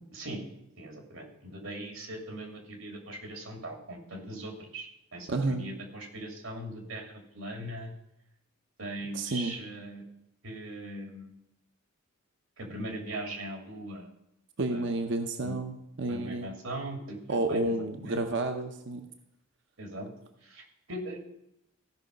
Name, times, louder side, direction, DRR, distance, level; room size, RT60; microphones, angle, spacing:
voice 1, 0.8-7.9 8.8-10.0 10.4-11.4 12.6-14.1 14.7-15.0 15.4-15.6 16.1-17.7 18.0-18.3 19.8-20.1 20.4-21.2, right 1 dB, 80° right, 2 dB, 2.6 m, -40 dB
voice 2, 5.3-5.7 9.1-9.6 14.6-16.6 17.3-19.0, right 2 dB, 60° right, 6 dB, 0.8 m, -30 dB
15.0 x 5.7 x 5.2 m, 0.83 s
head